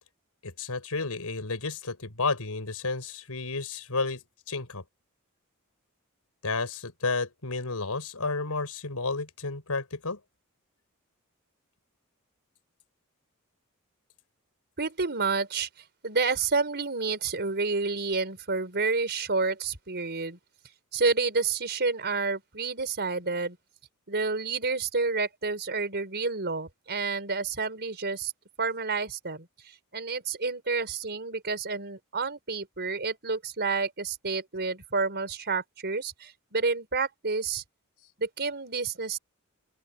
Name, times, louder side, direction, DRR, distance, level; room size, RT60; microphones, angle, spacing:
voice 1, 0.4-4.2 4.5-4.8 6.4-10.2, left 3 dB, 90° left, 4.3 m, -31 dB
voice 2, 14.8-15.7 16.0-20.4 20.9-23.6 24.1-28.3 28.6-29.5 29.9-37.6 38.2-39.2, right 4 dB, 50° right, 4.7 m, -29 dB
open air
head